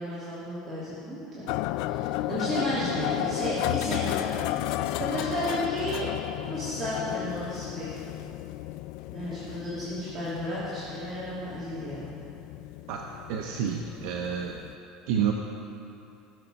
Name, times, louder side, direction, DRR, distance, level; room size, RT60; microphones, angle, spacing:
voice 1, 0.0-6.1 6.4-7.9 9.1-12.1, equal, 25° right, -11 dB, 2.9 m, -33 dB
sound 1, 1.5-14.7, left 15 dB, 60° left, 0.3 m, -33 dB
voice 2, 12.9-14.6 15.1-15.3, right 8 dB, 65° right, 1 dB, 0.8 m, -29 dB
18.0 x 7.0 x 5.2 m, 2.8 s
cardioid pair, 160°, 0 cm